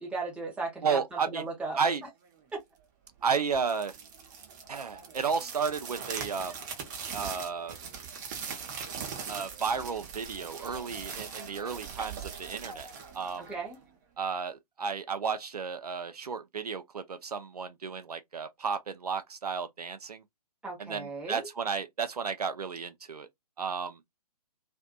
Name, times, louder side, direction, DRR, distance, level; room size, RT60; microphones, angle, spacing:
voice 1, 0.0-1.0 1.3-1.8 2.5-2.6 13.4-13.8 20.6-21.5, right 3 dB, 5° right, 0.9 m, -36 dB
voice 2, 0.8-1.4 1.8-2.0 3.2-3.9 4.7-6.6 7.1-7.8 9.3-12.9 13.1-13.5 14.2-20.2 20.8-23.3 23.6-24.0, right 5 dB, 70° right, 0.5 m, -33 dB
sound 1, 3.5-13.9, right 6 dB, 30° right, 0.6 m, -41 dB
2.5 x 2.5 x 2.2 m
figure-of-eight pair, 125°, 21 cm